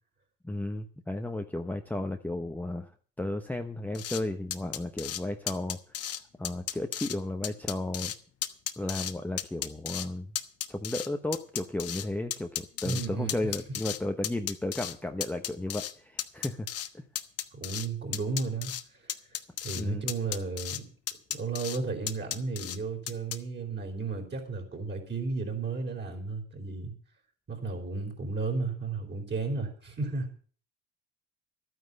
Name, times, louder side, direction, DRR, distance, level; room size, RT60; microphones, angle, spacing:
voice 1, 0.4-2.9 3.2-6.1 6.4-8.1 8.8-10.3 10.7-16.7 16.9-17.0 19.8-20.1, left 1 dB, 5° left, 4 dB, 1.0 m, -34 dB
sound 1, 3.9-4.2 4.5-5.2 5.5-6.2 6.4-7.2 7.4-8.2 8.4-9.1 9.4-10.1 10.3-12.1 12.3-14.0 14.2-14.9 15.2-15.9 16.2-16.9 17.2-17.9 18.1-18.8 19.1-19.8 20.1-20.8 21.1-21.8 22.1-22.8 23.1-23.4, left 10 dB, 50° left, 1.2 m, -34 dB
voice 2, 12.8-13.3 17.5-18.7 19.6-20.8 21.3-26.9 27.5-30.3, right 4 dB, 35° right, 2 dB, 4.5 m, -33 dB
12.0 x 9.5 x 6.7 m, 0.42 s
supercardioid pair, 95°, 31 cm